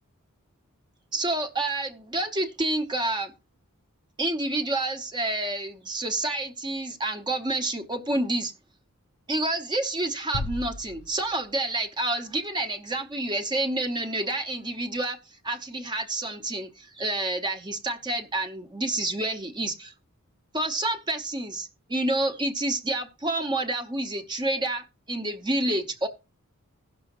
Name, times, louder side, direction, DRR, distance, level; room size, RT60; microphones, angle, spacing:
voice 1, 1.1-3.3 4.2-8.5 9.3-15.2 15.4-19.9 20.5-26.1, right 2 dB, 20° right, 0.8 m, -29 dB
sound 1, 10.3-11.9, left 2 dB, 65° left, 0.6 m, -36 dB
16.5 x 6.1 x 2.9 m
head